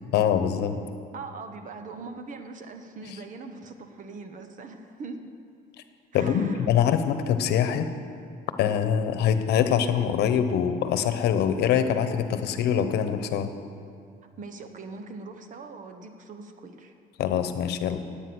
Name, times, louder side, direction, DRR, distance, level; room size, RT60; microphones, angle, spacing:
voice 1, 0.1-0.8 3.0-3.2 6.1-7.9 8.6-13.5 17.2-18.0, left 8 dB, 75° left, 9 dB, 1.0 m, -24 dB
voice 2, 1.1-5.3 6.1-6.7 14.4-16.9, right 4 dB, 50° right, 7 dB, 1.3 m, -41 dB
17.5 x 8.9 x 6.2 m, 2.3 s
cardioid pair, 110°, 17 cm